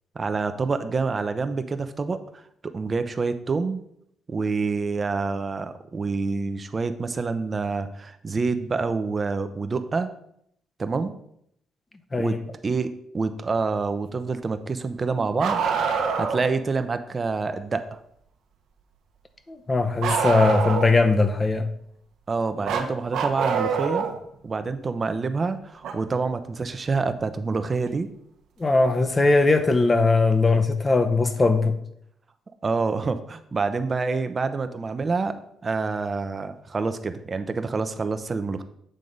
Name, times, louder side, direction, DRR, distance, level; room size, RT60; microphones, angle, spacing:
voice 1, 0.1-3.8 4.3-10.1 10.8-11.1 12.2-15.6 16.2-18.0 22.3-24.1 24.4-28.1 30.5-30.6 32.6-35.4 35.6-38.6, right 4 dB, 35° right, 0.7 m, -27 dB
Bark, 15.4-16.5 20.0-21.1 22.7-24.2 25.8-25.9 27.9-28.0 29.1-29.2, right 6 dB, 80° right, 1.0 m, -25 dB
voice 2, 19.5-21.7 28.6-31.7, left 3 dB, 25° left, 0.8 m, -20 dB
7.9 x 3.7 x 5.3 m
cardioid pair, 90°, 0 cm